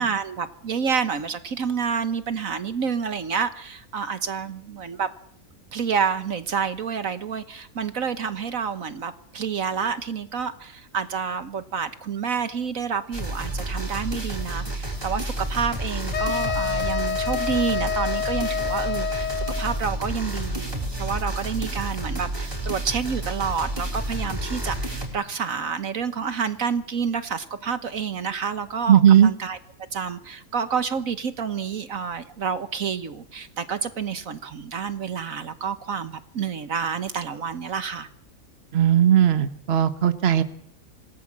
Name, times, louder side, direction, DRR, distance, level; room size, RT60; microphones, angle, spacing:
voice 1, 0.0-5.1 5.7-29.6 29.9-38.1, right 6 dB, 65° right, 11 dB, 1.5 m, -29 dB
sound 1, 13.1-25.1, right 1 dB, 15° right, 4.8 m, -30 dB
sound 2, 16.1-19.8, left 8 dB, 55° left, 1.6 m, -27 dB
voice 2, 28.9-29.3 38.7-40.4, right 10 dB, 45° right, 11 dB, 1.4 m, -17 dB
26.5 x 19.0 x 7.4 m, 0.67 s
omnidirectional pair, 1.6 m